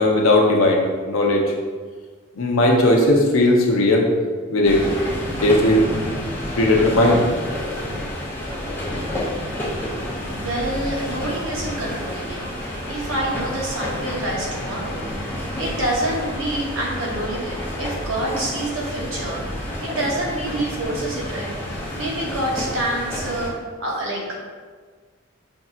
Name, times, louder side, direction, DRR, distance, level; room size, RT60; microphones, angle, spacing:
voice 1, 0.0-1.4 2.4-4.1 4.5-4.8 5.3-7.3 9.4-9.5, left 1 dB, 90° left, 1 dB, 0.6 m, -17 dB
sound 1, 4.6-23.5, left 1 dB, 10° left, 0.6 m, -29 dB
voice 2, 10.3-12.5 12.9-15.1 15.6-24.3, right 1 dB, 75° right, -2 dB, 0.9 m, -27 dB
5.2 x 2.7 x 2.4 m, 1.5 s
head